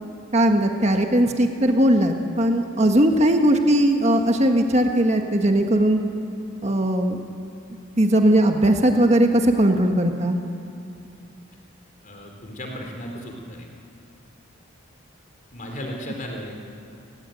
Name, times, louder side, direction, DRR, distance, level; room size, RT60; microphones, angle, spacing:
voice 1, 0.3-6.0 6.6-7.2 8.0-10.4, right 1 dB, 30° right, 4 dB, 1.5 m, -19 dB
voice 2, 12.0-13.7 15.5-16.5, equal, 40° left, 2 dB, 3.8 m, -35 dB
29.5 x 18.0 x 9.2 m, 2.6 s
head